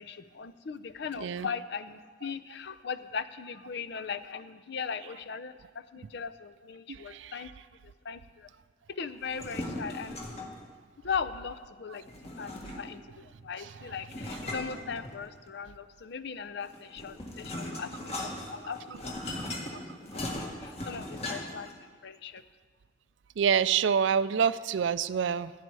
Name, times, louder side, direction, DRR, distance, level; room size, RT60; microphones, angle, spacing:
voice 1, 0.0-7.5 7.8-8.5 8.9-10.2 11.0-19.1 19.7-22.4, left 6 dB, 65° left, 13 dB, 0.6 m, -39 dB
voice 2, 6.9-7.3 19.4-19.5 23.4-25.5, right 7 dB, 80° right, 16 dB, 0.4 m, -27 dB
sound 1, 9.3-10.6 12.1-13.1 14.1-15.5 16.6-21.7, left 1 dB, 35° left, 1.7 m, -38 dB
16.0 x 9.8 x 4.7 m, 1.5 s
head